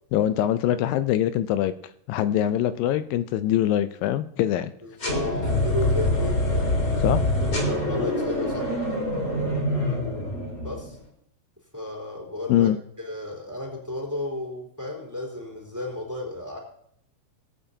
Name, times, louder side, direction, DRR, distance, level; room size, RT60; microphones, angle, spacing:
voice 1, 0.1-1.7 2.1-4.7 7.0-7.2 12.5-12.8, left 11 dB, 85° left, 12 dB, 2.3 m, -23 dB
voice 2, 4.8-6.8 7.4-8.7 10.5-11.0 11.7-12.7 13.0-16.6, left 1 dB, 5° right, -2 dB, 3.1 m, -33 dB
sound 1, 5.0-11.0, left 1 dB, 30° left, 3.8 m, -25 dB
21.5 x 8.7 x 2.8 m, 0.69 s
omnidirectional pair, 4.0 m